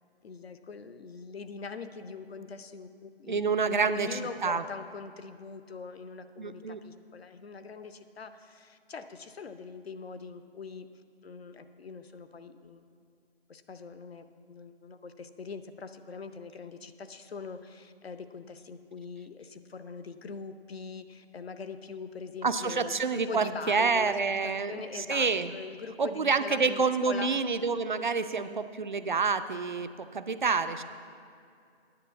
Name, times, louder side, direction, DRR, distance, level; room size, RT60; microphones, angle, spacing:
voice 1, 0.2-10.9 11.2-12.8 13.5-24.2 24.4-27.4 28.4-28.6, left 5 dB, 70° left, 10 dB, 0.8 m, -42 dB
voice 2, 3.3-4.6 6.4-6.8 22.4-25.5 26.0-30.8, right 4 dB, 50° right, 11 dB, 0.4 m, -28 dB
9.8 x 5.8 x 7.9 m, 2.4 s
hypercardioid pair, 175°, 32 cm